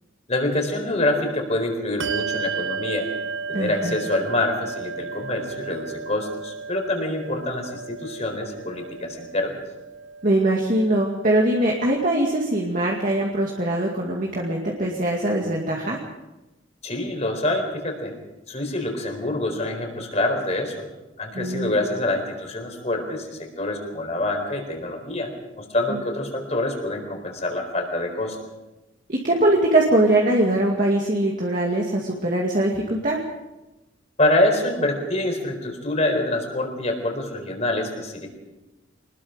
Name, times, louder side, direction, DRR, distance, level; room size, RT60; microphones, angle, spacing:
voice 1, 0.3-3.1 3.5-9.6 16.8-18.1 18.5-20.8 21.2-25.3 25.6-28.4 34.2-38.3, left 1 dB, 35° left, 4 dB, 4.4 m, -26 dB
Bell, 2.0-12.0, right 5 dB, 70° right, 0.8 m, -34 dB
voice 2, 3.5-4.0 10.2-16.0 21.3-21.7 25.9-26.0 29.1-33.2, right 1 dB, 40° right, -1 dB, 2.3 m, -22 dB
25.0 x 20.5 x 5.2 m, 1.0 s
head